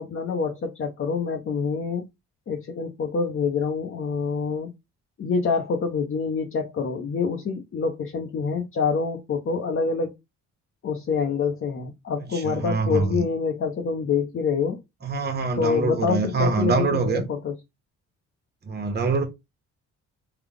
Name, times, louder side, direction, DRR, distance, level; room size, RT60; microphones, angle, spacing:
voice 1, 0.0-2.0 2.5-4.7 5.2-10.1 10.8-14.8 15.6-17.6, left 5 dB, 45° left, 0.8 m, -26 dB
voice 2, 12.3-13.2 15.0-17.2 18.7-19.2, right 4 dB, 35° right, 1.1 m, -24 dB
3.8 x 2.3 x 3.4 m
cardioid pair, 90°, 30 cm